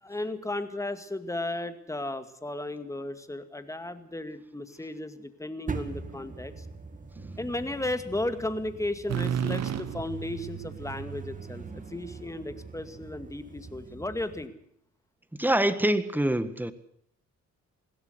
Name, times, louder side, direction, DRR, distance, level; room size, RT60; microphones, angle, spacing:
voice 1, 0.0-6.7 7.4-14.5, left 2 dB, 10° left, 10 dB, 2.1 m, -35 dB
sound 1, 5.7-14.5, right 4 dB, 25° right, 2.4 m, -43 dB
sound 2, 9.1-12.8, right 9 dB, 60° right, 1.3 m, -34 dB
voice 2, 15.4-16.7, right 1 dB, 5° right, 12 dB, 1.7 m, -25 dB
21.0 x 16.5 x 8.1 m, 0.67 s
cardioid pair, 90°, 30 cm